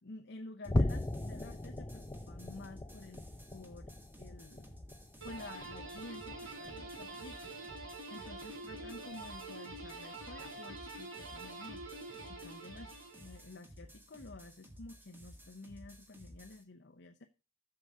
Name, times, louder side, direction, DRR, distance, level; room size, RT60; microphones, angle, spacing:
voice 1, 0.0-3.2 3.5-4.8 5.2-17.3, left 2 dB, 55° left, 6 dB, 0.7 m, -51 dB
sound 1, 0.6-16.6, equal, 10° right, 1.7 m, -55 dB
sound 2, 0.7-7.3 7.7-8.0 8.4-8.5 9.1-9.2, left 1 dB, 20° left, 0.5 m, -39 dB
sound 3, 5.2-13.5, right 2 dB, 70° right, 4.9 m, -46 dB
7.8 x 6.7 x 7.8 m, 0.32 s
head